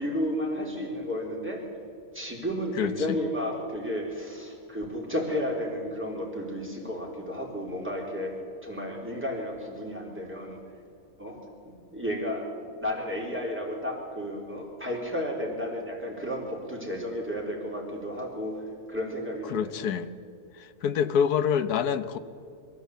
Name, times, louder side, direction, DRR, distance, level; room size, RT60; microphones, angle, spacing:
voice 1, 0.0-1.6 2.1-8.4 8.6-10.6 11.2-11.4 11.7-19.8, equal, 5° right, -2 dB, 3.8 m, -32 dB
voice 2, 19.5-20.1 20.6-22.2, left 8 dB, 80° left, 12 dB, 1.4 m, -26 dB
23.0 x 14.0 x 8.3 m, 2.5 s
omnidirectional pair, 1.6 m